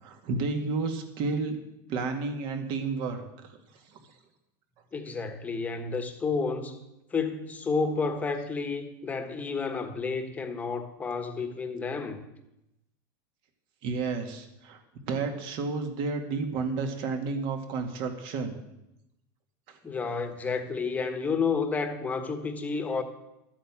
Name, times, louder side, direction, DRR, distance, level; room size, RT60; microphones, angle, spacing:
voice 1, 0.0-1.6 1.9-3.2 3.9-4.0 13.8-14.8 15.1-18.6 19.7-19.8, right 4 dB, 50° right, 2.2 m, -31 dB
voice 2, 4.9-6.8 7.1-12.2 19.8-23.0, left 4 dB, 15° left, 1.3 m, -30 dB
12.5 x 8.7 x 7.5 m
supercardioid pair, 150°, 10 cm